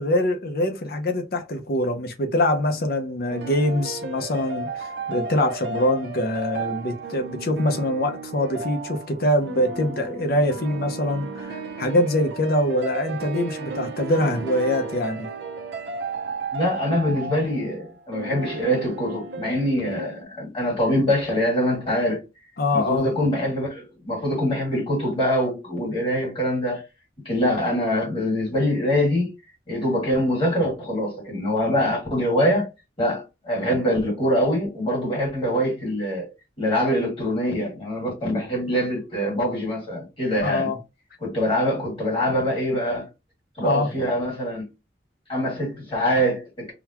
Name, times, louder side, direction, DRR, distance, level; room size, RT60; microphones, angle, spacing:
voice 1, 0.0-15.3 22.6-23.1 40.4-40.8 43.6-43.9, left 1 dB, 55° left, 0.6 m, -24 dB
sound 1, 3.3-20.2, right 4 dB, 75° right, 0.6 m, -34 dB
voice 2, 16.5-22.2 22.7-26.8 27.2-29.3 29.7-32.7 33.0-36.3 36.6-40.7 41.2-43.1 43.6-44.7 45.3-46.7, equal, 30° left, 2.2 m, -24 dB
3.8 x 2.2 x 2.9 m
head